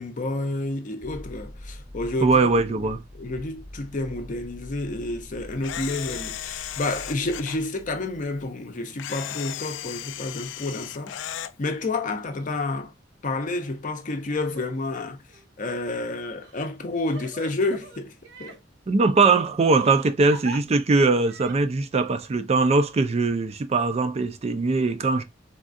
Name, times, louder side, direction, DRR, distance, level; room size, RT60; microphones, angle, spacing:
voice 1, 0.0-11.1 11.6-12.9 13.2-15.2 15.6-18.1 18.4-18.6, left 2 dB, 45° left, 0.6 m, -30 dB
sound 1, 1.0-8.4, left 1 dB, 10° right, 0.8 m, -44 dB
voice 2, 2.2-3.0 18.9-25.2, right 3 dB, 35° right, 0.4 m, -21 dB
Camera, 5.6-7.6 9.0-11.5, left 11 dB, 85° left, 0.3 m, -35 dB
Crying sobbing, 14.3-14.7 15.3-15.4 16.4-18.6 19.8-20.6 21.3-21.6, right 1 dB, 65° right, 0.8 m, -42 dB
3.6 x 2.3 x 2.5 m
head